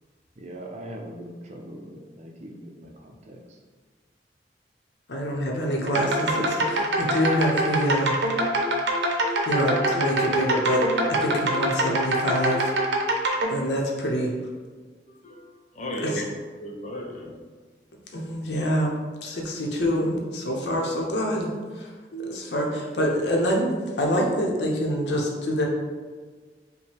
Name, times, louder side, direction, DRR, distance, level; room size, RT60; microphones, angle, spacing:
voice 1, 0.4-3.6, right 1 dB, 40° right, 1 dB, 0.5 m, -41 dB
voice 2, 5.1-8.1 9.5-12.7 13.5-14.3 16.0-16.2 18.1-18.9 19.2-21.5 21.8-21.9 22.3-25.6, equal, 80° left, -1 dB, 0.8 m, -26 dB
sound 1, 5.8-13.5, right 1 dB, 80° right, 0.6 m, -24 dB
voice 3, 15.1-15.5 15.7-16.3 16.6-17.3 22.1-22.5 22.9-23.2, right 1 dB, 40° left, 1 dB, 0.6 m, -35 dB
5.3 x 2.2 x 3.3 m, 1.5 s
head